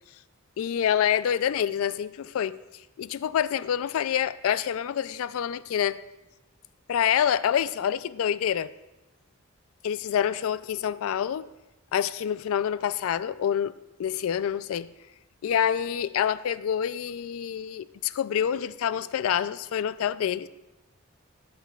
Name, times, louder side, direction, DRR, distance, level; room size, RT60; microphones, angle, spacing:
voice 1, 0.6-2.6 3.0-6.0 6.9-8.7 9.8-11.5 11.9-13.7 14.0-14.9 15.4-20.5, left 9 dB, 75° left, 0.3 m, -27 dB
12.5 x 8.6 x 2.3 m
head